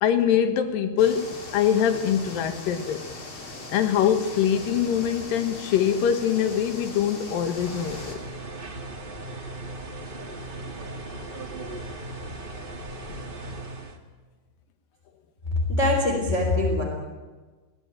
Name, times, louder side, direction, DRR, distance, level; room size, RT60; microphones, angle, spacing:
voice 1, 0.0-3.0 3.7-8.2 10.2-10.3, left 9 dB, 65° left, 7 dB, 3.0 m, -23 dB
sound 1, 1.0-8.2, left 2 dB, 35° left, 3.5 m, -40 dB
sound 2, 7.5-14.0, right 2 dB, 45° right, 0.6 m, -37 dB
voice 2, 15.5-16.8, left 2 dB, 20° left, 0 dB, 3.6 m, -23 dB
22.0 x 17.5 x 9.1 m, 1.3 s
omnidirectional pair, 4.6 m